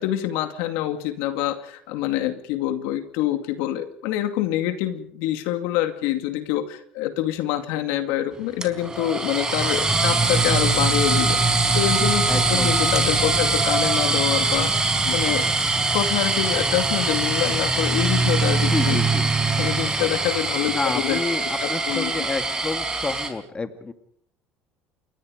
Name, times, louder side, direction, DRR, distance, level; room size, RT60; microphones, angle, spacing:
voice 1, 0.0-15.5 15.9-19.0 19.5-21.2 21.6-22.1, left 12 dB, 85° left, 8 dB, 2.3 m, -26 dB
sound 1, 8.6-23.3, right 3 dB, 15° right, 4.4 m, -22 dB
voice 2, 12.3-12.8 13.3-13.4 18.7-19.3 20.7-23.9, left 4 dB, 25° left, 8 dB, 2.3 m, -29 dB
28.5 x 22.0 x 5.2 m, 0.65 s
supercardioid pair, 100°, 4 cm